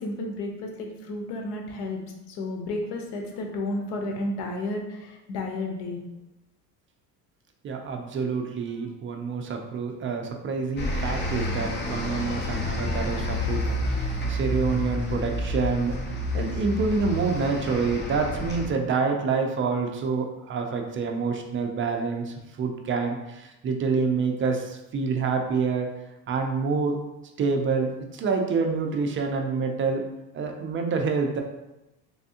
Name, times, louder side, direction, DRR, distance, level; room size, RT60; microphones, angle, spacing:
voice 1, 0.0-2.0 2.3-6.0, left 2 dB, 80° left, 2 dB, 0.9 m, -32 dB
voice 2, 7.6-16.0 16.3-25.9 26.3-27.0 27.4-30.0 30.3-31.4, right 4 dB, 30° right, 4 dB, 0.4 m, -27 dB
sound 1, 10.8-18.7, left 1 dB, 25° left, 0.6 m, -29 dB
3.4 x 3.3 x 2.7 m, 0.96 s
cardioid pair, 125°, 41 cm